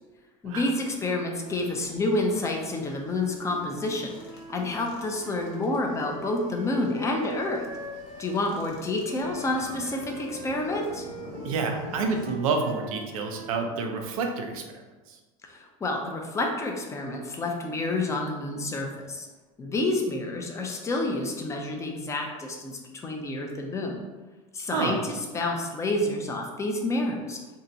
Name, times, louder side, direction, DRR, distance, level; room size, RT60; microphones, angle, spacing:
voice 1, 0.4-4.1 4.5-7.6 8.2-11.1 15.5-19.3 19.6-24.0 24.5-27.4, left 2 dB, 15° left, 2 dB, 0.5 m, -29 dB
sound 1, 1.4-12.3, left 3 dB, 65° left, 0.7 m, -48 dB
Wind instrument woodwind instrument, 3.3-8.3 9.0-14.0, right 1 dB, 45° right, 0.8 m, -42 dB
voice 2, 11.4-14.6 15.1-15.2 24.7-25.0, right 4 dB, 85° right, 3 dB, 0.6 m, -28 dB
2.7 x 2.2 x 3.9 m, 1.2 s
supercardioid pair, 120°, 17 cm